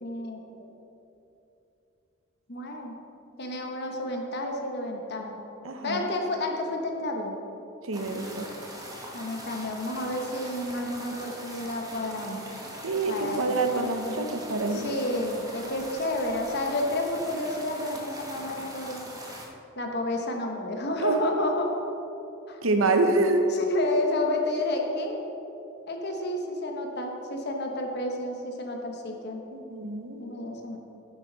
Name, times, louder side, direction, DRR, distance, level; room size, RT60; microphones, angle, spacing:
voice 1, 0.0-0.4 2.5-3.0 3.4-5.4 5.8-7.3 9.1-12.5 13.1-13.6 14.7-19.1 19.7-21.8 22.5-22.6 23.5-25.2 25.9-29.5 30.2-30.8, left 1 dB, 50° left, 2 dB, 1.1 m, -30 dB
voice 2, 5.6-6.1 7.8-8.5 12.8-14.9 21.0-21.2 22.6-23.5 29.5-30.2, right 3 dB, 75° right, 5 dB, 0.9 m, -26 dB
sound 1, 7.9-19.5, equal, 15° right, 1.1 m, -42 dB
9.9 x 8.2 x 4.0 m, 2.9 s
head